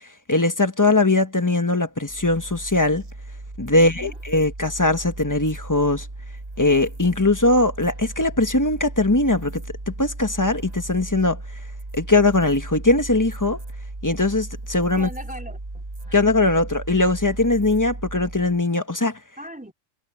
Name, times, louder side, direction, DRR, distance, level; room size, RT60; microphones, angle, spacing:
voice 1, 0.0-3.0 3.6-6.1 6.6-11.4 11.9-13.6 14.0-15.1 16.1-19.2, left 2 dB, 15° left, 1.1 m, -20 dB
sound 1, 2.1-18.6, right 2 dB, 30° right, 1.9 m, -36 dB
voice 2, 3.7-4.2 15.0-16.3 16.6-16.7 19.4-19.7, equal, 5° right, 3.2 m, -40 dB
omnidirectional pair, 1.4 m